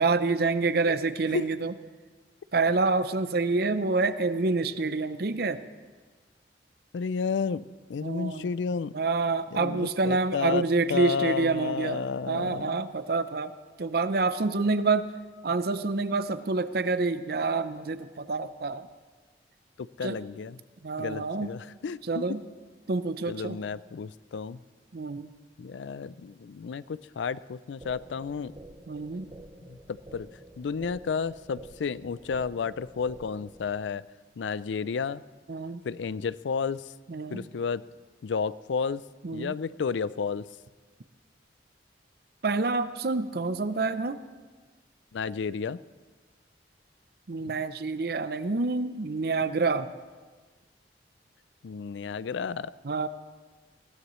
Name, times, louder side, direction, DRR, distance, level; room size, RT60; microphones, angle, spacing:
voice 1, 0.0-1.7 2.5-5.6 8.0-8.5 8.9-13.5 13.8-15.1 15.4-18.9 20.0-20.2 20.8-21.5 22.1-22.4 22.9-23.6 24.9-25.3 28.9-29.3 35.5-35.8 37.1-37.5 39.2-39.5 42.4-44.2 47.3-49.9 52.8-53.1, right 3 dB, 60° right, 12 dB, 0.6 m, -27 dB
voice 2, 6.9-8.9 9.5-12.8 20.0-20.6 21.0-22.2 23.3-24.6 25.6-28.5 29.7-30.3 30.6-34.0 34.4-35.2 35.8-36.8 37.3-37.8 38.2-39.0 39.3-40.5 45.1-45.8 47.4-47.5 51.6-52.7, left 5 dB, 85° left, 18 dB, 0.4 m, -32 dB
sound 1, 27.8-33.8, right 1 dB, 25° right, 0.8 m, -49 dB
20.5 x 16.0 x 3.1 m, 1.4 s
head